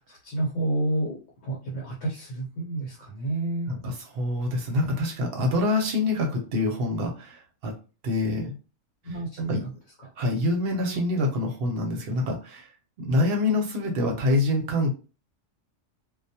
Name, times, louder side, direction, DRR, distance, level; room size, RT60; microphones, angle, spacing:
voice 1, 0.1-1.1 1.4-3.7 9.0-9.6 10.8-10.9, right 2 dB, 70° left, -3 dB, 1.0 m, -29 dB
voice 2, 3.7-7.7 8.0-8.5 9.1-9.6 10.2-12.7 13.0-14.9, left 2 dB, 60° right, 1 dB, 0.7 m, -26 dB
2.2 x 2.1 x 2.7 m, 0.34 s
omnidirectional pair, 1.4 m